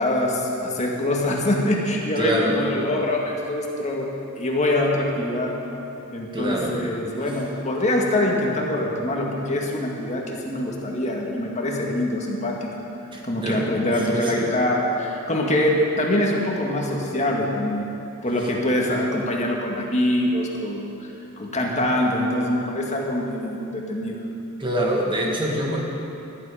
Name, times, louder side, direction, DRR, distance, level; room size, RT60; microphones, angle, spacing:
voice 1, 0.0-4.1 4.4-5.5 6.1-12.7 13.2-17.8 18.2-21.1 21.4-24.2, left 1 dB, 35° left, -1 dB, 1.9 m, -24 dB
voice 2, 2.2-2.6 6.3-6.8 13.1-13.7 13.9-14.5 18.4-18.5 24.6-25.8, equal, 25° right, -1 dB, 2.0 m, -25 dB
17.0 x 11.5 x 5.0 m, 2.8 s
head